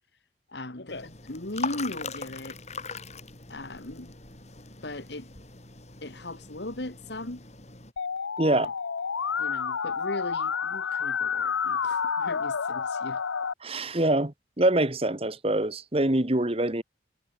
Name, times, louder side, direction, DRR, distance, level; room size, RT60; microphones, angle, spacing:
voice 1, 0.5-2.6 3.5-4.1 4.8-5.3 6.0-7.5 8.6-8.7 9.4-13.2, left 1 dB, 60° left, 2.0 m, -38 dB
sound 1, 0.9-7.9, left 4 dB, 35° left, 4.6 m, -41 dB
Musical instrument, 8.0-13.5, left 6 dB, 80° left, 0.7 m, -29 dB
voice 2, 13.6-16.8, right 1 dB, 30° right, 1.4 m, -25 dB
head